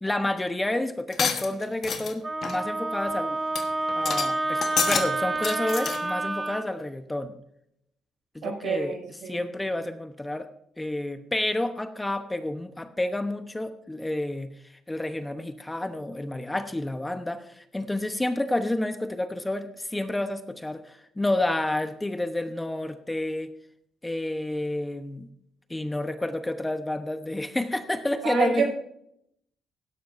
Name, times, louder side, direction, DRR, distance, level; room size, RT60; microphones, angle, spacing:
voice 1, 0.0-3.4 3.9-7.3 8.3-10.5 10.8-14.5 14.9-23.5 24.0-25.3 25.7-28.7, left 1 dB, 10° left, 9 dB, 0.9 m, -30 dB
sound 1, 1.1-2.1 2.4-2.6 3.1-3.2 3.6-3.7 3.9-4.3 4.6-5.1 5.4-6.0, left 6 dB, 55° left, 1.3 m, -28 dB
Wind instrument woodwind instrument, 2.2-6.6, right 2 dB, 20° right, 0.8 m, -29 dB
voice 2, 8.4-9.4 28.2-28.7, right 5 dB, 80° right, 1 dB, 5.7 m, -28 dB
16.5 x 12.0 x 2.6 m, 0.74 s
cardioid pair, 90°, 0 cm